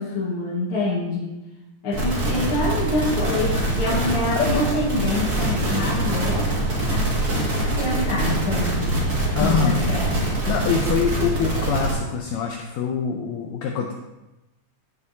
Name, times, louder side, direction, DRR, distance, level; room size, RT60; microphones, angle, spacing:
voice 1, 0.0-1.3 1.8-6.5 6.9-7.1 7.8-8.9 9.4-10.1, left 2 dB, 50° left, -6 dB, 2.1 m, -26 dB
sound 1, 1.9-11.9, right 1 dB, 30° right, 2.3 m, -24 dB
sound 2, 2.1-7.5, right 2 dB, 65° right, 2.5 m, -43 dB
voice 2, 4.4-4.7 9.4-9.8 10.5-13.9, left 6 dB, 75° left, 2 dB, 1.7 m, -24 dB
15.5 x 6.7 x 2.8 m, 1.0 s
omnidirectional pair, 3.8 m